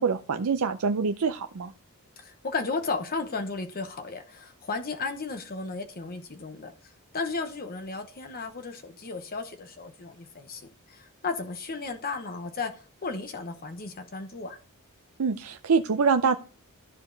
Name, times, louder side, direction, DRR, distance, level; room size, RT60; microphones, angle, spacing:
voice 1, 0.0-1.7 15.2-16.4, right 5 dB, 70° right, 0.5 m, -25 dB
voice 2, 2.2-6.7 7.1-10.6 10.9-12.7 13.0-14.6, left 4 dB, 45° left, 0.9 m, -34 dB
13.5 x 5.0 x 3.9 m
head